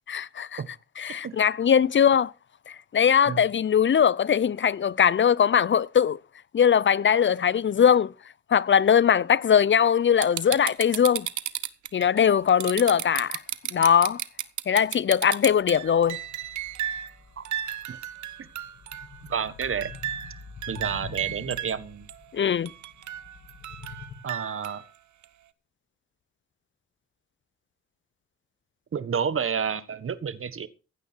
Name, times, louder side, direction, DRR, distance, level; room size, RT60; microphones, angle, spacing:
voice 1, 0.1-0.6 1.0-2.3 2.9-6.2 6.5-8.1 8.5-11.3 11.9-13.4 13.7-14.2 14.7-16.2 22.3-22.7, left 8 dB, 40° left, 0.6 m, -21 dB
sound 1, 10.2-17.1 17.5-19.3 19.6-21.8 22.1-22.2 22.7-24.8 25.2-25.3, right 12 dB, 75° right, 1.0 m, -33 dB
sound 2, 15.5-24.1, left 5 dB, 70° left, 2.7 m, -46 dB
voice 2, 19.3-19.9 20.7-22.1 24.2-24.8 28.9-30.7, right 7 dB, 45° right, 1.5 m, -30 dB
15.5 x 9.4 x 4.6 m
cardioid pair, 75°, 29 cm